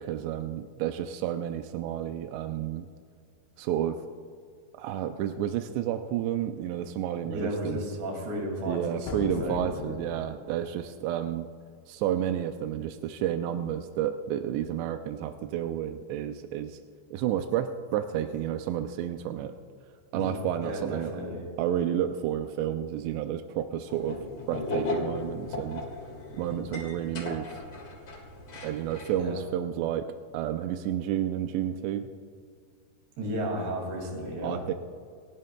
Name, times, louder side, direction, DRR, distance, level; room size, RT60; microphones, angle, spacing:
voice 1, 0.0-2.9 3.6-4.0 4.8-7.8 8.7-11.5 11.9-16.8 17.1-19.6 20.1-21.2 21.6-24.2 24.5-25.8 26.4-27.6 28.6-30.1 30.3-32.1 34.4-34.7, right 11 dB, 85° right, 7 dB, 2.4 m, -31 dB
voice 2, 7.3-9.7 20.1-20.3 20.6-21.4 29.2-29.4 33.2-34.6, equal, 70° right, 0 dB, 4.4 m, -33 dB
sound 1, 9.0-10.8, left 6 dB, 75° left, 2.9 m, -38 dB
sound 2, 23.9-29.2, left 2 dB, 45° left, 1.9 m, -36 dB
28.0 x 11.0 x 2.3 m, 2.1 s
omnidirectional pair, 5.3 m